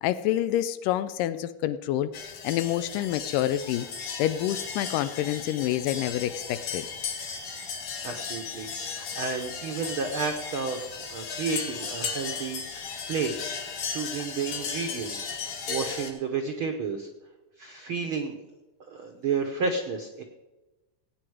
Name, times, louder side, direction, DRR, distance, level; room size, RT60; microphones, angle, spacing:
voice 1, 0.0-2.1 2.4-3.9 4.2-6.9, left 12 dB, 90° left, 12 dB, 2.3 m, -27 dB
sound 1, 2.1-16.1, left 6 dB, 75° left, 3.2 m, -36 dB
voice 2, 8.0-13.3 13.9-15.3 15.7-17.1 17.6-18.4 18.9-20.2, right 5 dB, 70° right, 4 dB, 1.2 m, -31 dB
17.5 x 8.8 x 4.9 m, 1.1 s
omnidirectional pair, 3.8 m